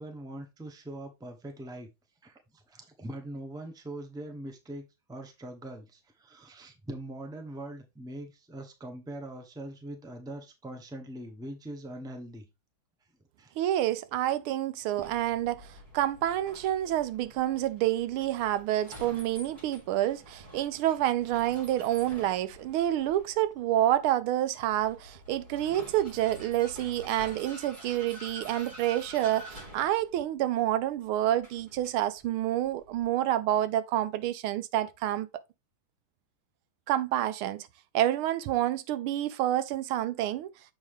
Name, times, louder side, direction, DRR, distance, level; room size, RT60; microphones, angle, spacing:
voice 1, 0.0-1.9 2.2-12.5 13.4-13.5, right 1 dB, 5° right, 0.7 m, -42 dB
voice 2, 13.6-35.3 36.9-37.7 37.9-40.5, right 13 dB, 85° right, 1.5 m, -28 dB
Vehicle, 15.0-33.1, equal, 20° right, 2.9 m, -49 dB
7.3 x 4.9 x 3.6 m
omnidirectional pair, 2.3 m